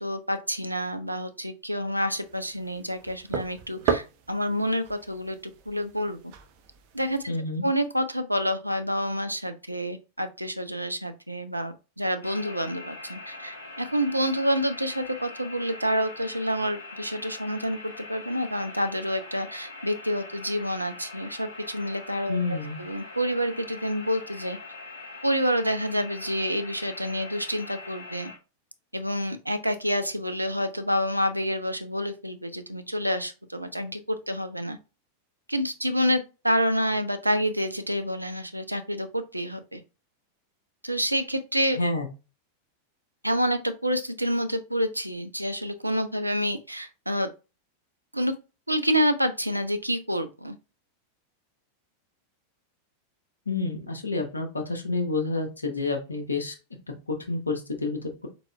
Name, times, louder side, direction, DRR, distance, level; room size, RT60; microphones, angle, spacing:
voice 1, 0.0-5.4 5.7-6.3 6.9-7.3 7.6-24.6 25.2-28.3 28.9-34.8 35.5-39.8 40.8-41.8 43.2-47.3 48.1-48.3 48.7-50.6, equal, 85° right, 9 dB, 0.5 m, -28 dB
sound 1, 2.2-7.3, right 7 dB, 45° right, 0.6 m, -35 dB
voice 2, 7.3-7.7 22.3-22.8 41.8-42.1 53.5-56.5 57.1-58.3, left 3 dB, 80° left, 4 dB, 0.9 m, -29 dB
sound 2, 12.2-28.4, left 3 dB, 60° left, 1.4 m, -43 dB
4.2 x 4.0 x 2.3 m, 0.30 s
figure-of-eight pair, 90°, 0 cm